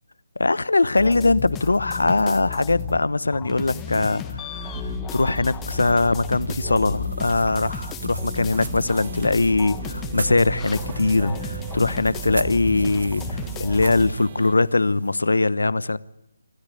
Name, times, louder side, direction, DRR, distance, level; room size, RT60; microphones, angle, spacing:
voice 1, 0.4-16.0, left 3 dB, 75° left, 0.9 m, -21 dB
sound 1, 1.0-3.1 3.3-14.1, left 7 dB, 15° left, 1.5 m, -33 dB
sound 2, 4.7-14.5, right 11 dB, 30° right, 0.8 m, -36 dB
sound 3, 6.7-15.3, right 4 dB, 60° right, 1.2 m, -42 dB
26.5 x 13.0 x 10.0 m
figure-of-eight pair, 150°, 0 cm